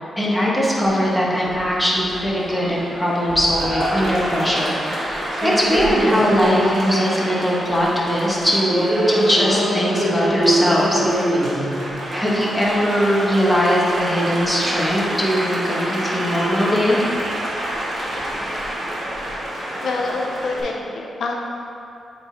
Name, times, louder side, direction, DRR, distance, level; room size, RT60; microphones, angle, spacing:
voice 1, 0.2-11.0 12.1-17.0, equal, 5° left, -5 dB, 1.2 m, -20 dB
Applause, 0.9-20.6, right 1 dB, 60° right, 1.3 m, -25 dB
voice 2, 19.8-21.4, left 3 dB, 70° left, 0 dB, 0.5 m, -26 dB
7.5 x 4.4 x 2.9 m, 2.6 s
cardioid pair, 85°, 0 cm